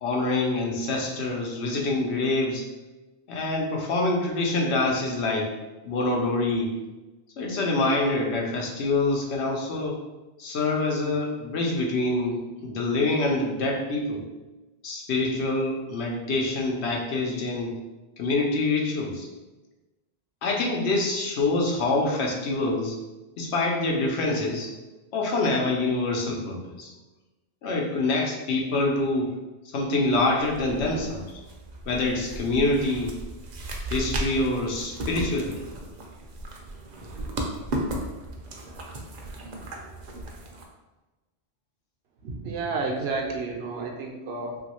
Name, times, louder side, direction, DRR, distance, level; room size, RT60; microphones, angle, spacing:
voice 1, 0.0-2.6 3.3-5.5 5.8-6.7 7.4-10.0 10.4-14.2 14.8-17.7 18.2-19.3 20.4-23.0 23.4-24.7 25.1-26.9 27.6-29.3 29.7-31.2 31.9-33.1 33.9-35.6, left 2 dB, 90° left, -1 dB, 0.9 m, -26 dB
sound 1, 30.1-40.6, right 1 dB, 55° right, 0.5 m, -35 dB
voice 2, 42.2-44.6, right 3 dB, 75° right, 1 dB, 0.8 m, -31 dB
3.0 x 2.7 x 2.9 m, 1.1 s
omnidirectional pair, 1.1 m